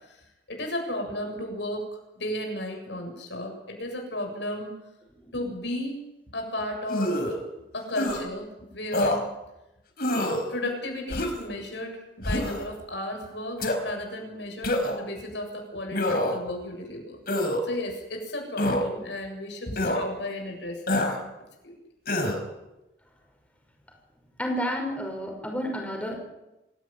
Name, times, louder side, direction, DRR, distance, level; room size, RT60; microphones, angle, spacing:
voice 1, 0.5-1.9 2.1-4.7 5.3-6.0 6.3-7.4 7.7-9.3 10.5-17.2 17.6-21.0 21.6-21.7, left 1 dB, 80° left, 3 dB, 7.4 m, -34 dB
sound 1, 6.9-7.4 7.9-8.2 8.9-9.2 10.0-10.4 11.1-11.5 12.2-12.6 13.6-13.8 14.6-15.0 15.9-16.4 17.3-17.6 18.6-18.8 19.8-20.0 20.9-21.2 22.1-22.4, left 1 dB, 55° left, 4.4 m, -26 dB
voice 2, 24.4-26.2, equal, 5° left, 1 dB, 5.7 m, -31 dB
26.0 x 17.0 x 9.2 m, 0.96 s
head